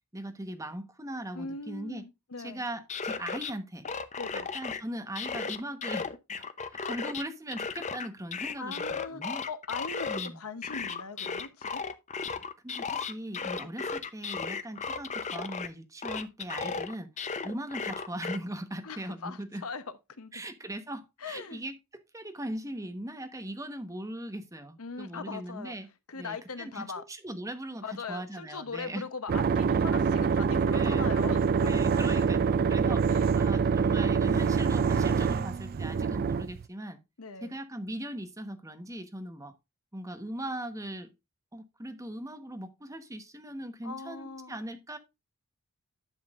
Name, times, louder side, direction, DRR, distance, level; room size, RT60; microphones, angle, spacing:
voice 1, 0.1-2.0 2.4-3.8 4.3-6.1 6.4-6.5 6.8-9.4 10.1-10.4 12.6-17.1 17.4-19.6 20.3-25.9 26.1-29.0 30.7-31.1 31.7-37.0 37.4-39.6 39.9-41.1 41.5-45.0, right 1 dB, 15° right, 1.1 m, -39 dB
voice 2, 1.3-2.6 4.2-4.5 8.6-11.8 13.6-13.7 18.8-19.8 20.2-20.4 21.2-21.6 24.8-25.7 26.1-27.0 27.8-32.3 33.1-33.4 37.2-37.5 43.8-44.6, left 4 dB, 70° left, 1.0 m, -40 dB
sound 1, 2.7-3.5 3.8-4.8 5.2-7.2 7.5-10.3 10.6-15.7 16.0-18.4, left 5 dB, 30° left, 0.7 m, -35 dB
sound 2, 29.3-36.6, right 5 dB, 40° right, 0.3 m, -25 dB
11.0 x 7.2 x 2.5 m
head